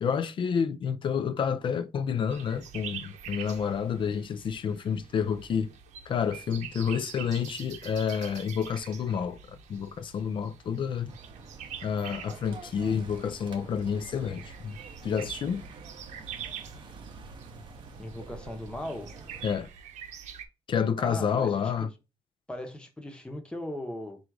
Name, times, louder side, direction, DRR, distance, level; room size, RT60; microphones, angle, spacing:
voice 1, 0.0-5.7 6.1-11.1 11.8-14.8 15.0-15.7 19.4-19.7 20.7-21.9, left 7 dB, 45° left, 0.4 m, -29 dB
sound 1, 2.3-20.5, right 8 dB, 90° right, 0.6 m, -45 dB
sound 2, 11.1-19.6, right 4 dB, 40° right, 0.7 m, -47 dB
voice 2, 18.0-19.1 21.0-21.6 22.5-24.2, left 1 dB, 10° left, 0.8 m, -38 dB
3.7 x 2.4 x 4.6 m
cardioid pair, 135°, 12 cm